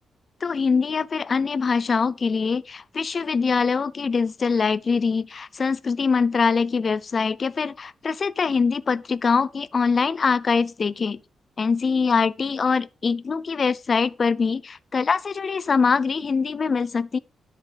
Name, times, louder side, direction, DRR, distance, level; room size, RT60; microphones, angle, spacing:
voice 1, 0.4-11.2 11.6-17.2, left 5 dB, 35° left, 0.5 m, -23 dB
10.5 x 7.9 x 3.4 m
wide cardioid pair, 155°, 0 cm